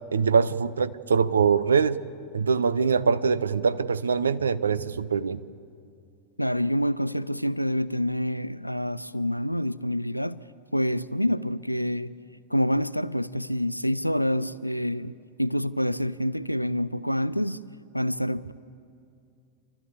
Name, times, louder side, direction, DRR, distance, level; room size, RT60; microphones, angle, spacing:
voice 1, 0.1-2.0 2.3-5.4, right 5 dB, 70° right, 0.6 m, -23 dB
voice 2, 6.4-10.4 10.7-12.1 12.5-17.6 17.9-18.5, equal, 90° left, 0.4 m, -27 dB
28.5 x 12.5 x 8.7 m
figure-of-eight pair, 90°, 0 cm